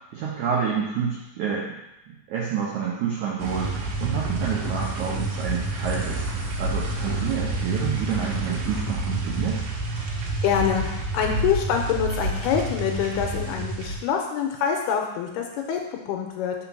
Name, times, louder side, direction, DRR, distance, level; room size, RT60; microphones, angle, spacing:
voice 1, 0.1-1.8 2.1-3.7 4.0-6.2 6.6-9.6, right 7 dB, 90° right, -4 dB, 1.6 m, -28 dB
sound 1, 3.4-14.0, right 2 dB, 70° right, 2.8 m, -28 dB
voice 2, 10.4-15.8 16.1-16.6, left 8 dB, 85° left, 2 dB, 2.6 m, -25 dB
5.8 x 4.5 x 5.9 m, 0.92 s
omnidirectional pair, 4.8 m